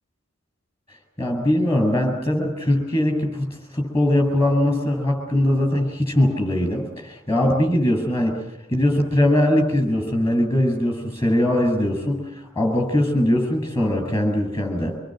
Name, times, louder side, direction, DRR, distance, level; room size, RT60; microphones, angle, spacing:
voice 1, 1.2-8.4 8.7-14.9, left 1 dB, 15° left, 5 dB, 7.3 m, -21 dB
27.0 x 21.0 x 7.8 m, 0.84 s
head